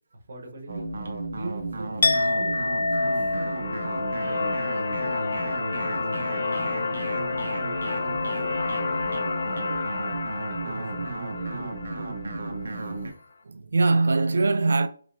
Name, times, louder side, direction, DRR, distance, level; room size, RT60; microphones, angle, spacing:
voice 1, 0.1-0.9 1.3-2.6 3.3-3.8 4.1-5.3 5.7-7.6 8.0-10.2 10.5-11.7, right 2 dB, 50° right, 1.0 m, -43 dB
sound 1, 0.7-13.1, right 2 dB, 85° right, 1.0 m, -33 dB
Chink clink, 2.0-8.0 8.3-8.7, left 3 dB, 75° left, 0.3 m, -29 dB
sound 2, 3.0-13.1, left 4 dB, 45° left, 0.7 m, -31 dB
voice 2, 10.7-11.0 13.5-14.9, right 3 dB, 65° right, 0.4 m, -23 dB
4.9 x 3.1 x 2.6 m
hypercardioid pair, 175°, 0 cm